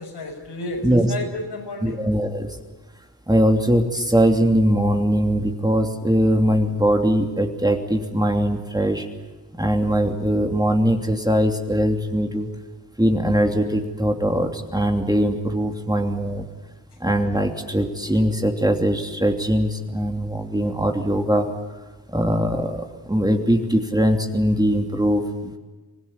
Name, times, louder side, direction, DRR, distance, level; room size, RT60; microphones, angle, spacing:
voice 1, 0.0-2.0, left 2 dB, 70° left, 2 dB, 6.4 m, -32 dB
voice 2, 1.8-2.6 3.3-9.1 9.6-12.5 13.0-16.5 17.0-21.5 22.1-25.6, equal, 10° right, 3 dB, 2.9 m, -21 dB
25.5 x 16.5 x 10.0 m, 1.3 s
cardioid pair, 50°, 42 cm